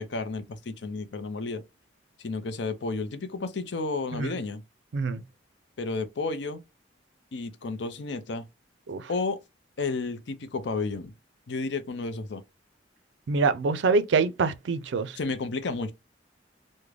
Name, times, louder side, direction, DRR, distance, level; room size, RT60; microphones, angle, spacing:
voice 1, 0.0-1.6 2.2-4.6 5.8-6.6 7.3-8.5 9.1-9.4 9.8-11.1 11.5-12.4 15.1-15.9, left 3 dB, 70° left, 0.6 m, -32 dB
voice 2, 13.3-15.2, right 4 dB, 75° right, 0.4 m, -25 dB
3.6 x 2.1 x 3.2 m
head